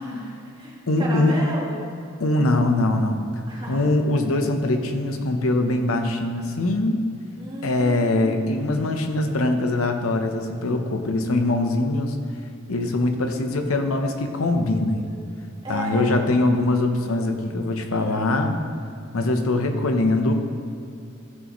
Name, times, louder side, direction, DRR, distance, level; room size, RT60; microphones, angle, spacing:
voice 1, 0.0-1.7 3.5-3.8 7.4-8.9 15.0-16.1 17.9-18.4, right 1 dB, 25° right, -6 dB, 2.2 m, -35 dB
voice 2, 0.9-1.4 2.2-3.3 3.7-7.0 7.6-12.2 12.7-15.1 15.7-18.6 19.1-20.3, left 2 dB, 85° left, 5 dB, 0.8 m, -22 dB
14.5 x 6.3 x 3.1 m, 2.5 s
head